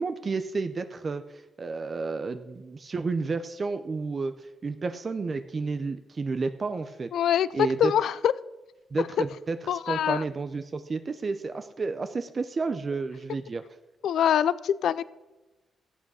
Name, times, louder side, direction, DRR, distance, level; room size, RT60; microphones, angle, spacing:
voice 1, 0.0-7.1 7.5-7.9 8.9-13.6, right 4 dB, 30° right, 9 dB, 0.6 m, -31 dB
voice 2, 7.1-7.5 7.8-8.3 9.7-10.2 14.0-15.0, left 9 dB, 75° left, 18 dB, 0.4 m, -24 dB
15.0 x 8.3 x 6.2 m, 1.1 s
cardioid pair, 135°, 0 cm